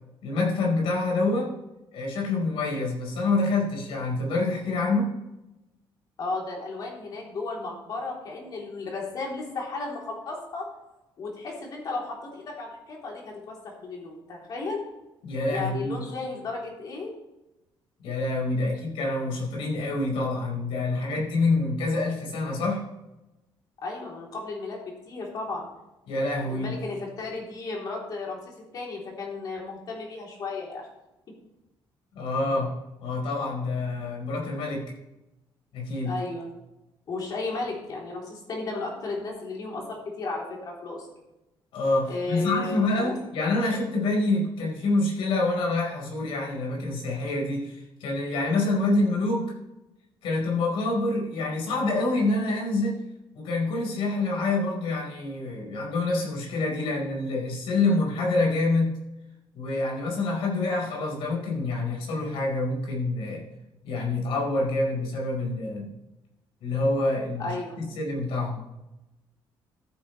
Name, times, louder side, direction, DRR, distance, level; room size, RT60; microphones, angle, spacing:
voice 1, 0.2-1.5 1.9-5.1 15.2-16.0 18.0-22.8 26.1-26.8 32.1-32.7 33.0-34.9 35.7-36.1 41.7-49.5 50.2-53.0 53.3-59.0 59.5-63.4 63.8-65.9 66.6-68.6, left 2 dB, 85° left, -2 dB, 4.7 m, -27 dB
voice 2, 6.2-10.7 11.2-14.8 15.5-17.1 23.8-25.7 26.5-30.9 36.0-36.5 37.1-41.1 42.1-43.2 67.4-67.8, left 3 dB, 45° left, -1 dB, 3.4 m, -34 dB
14.0 x 8.9 x 3.3 m, 0.94 s
cardioid pair, 160°, 9 cm